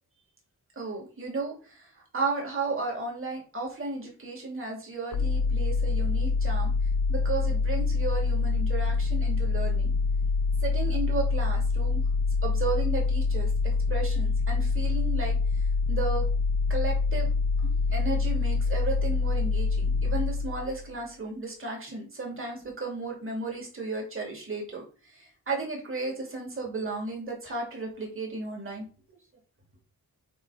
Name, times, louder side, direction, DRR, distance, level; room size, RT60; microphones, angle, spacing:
voice 1, 0.8-1.8 2.1-6.7 7.1-9.9 10.6-12.0 12.4-13.5 13.9-15.4 15.9-16.2 16.7-17.3 17.9-24.8 25.5-28.8, right 3 dB, 35° right, -1 dB, 2.6 m, -34 dB
sound 1, 5.1-20.9, left 4 dB, 55° left, 0.7 m, -26 dB
8.6 x 3.5 x 4.9 m, 0.37 s
wide cardioid pair, 170°, 38 cm